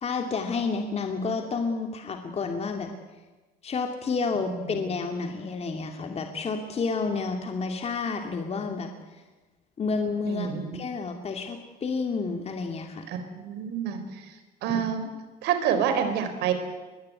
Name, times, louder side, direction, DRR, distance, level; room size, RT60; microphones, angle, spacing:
voice 1, 0.0-2.9 3.6-9.2 9.8-13.1 14.7-14.8, left 4 dB, 40° left, 4 dB, 2.5 m, -30 dB
voice 2, 10.3-10.8 13.1-14.1 14.6-15.1 15.4-16.5, right 8 dB, 90° right, 8 dB, 4.3 m, -27 dB
22.5 x 21.5 x 9.6 m, 1.2 s
cardioid pair, 110°, 17 cm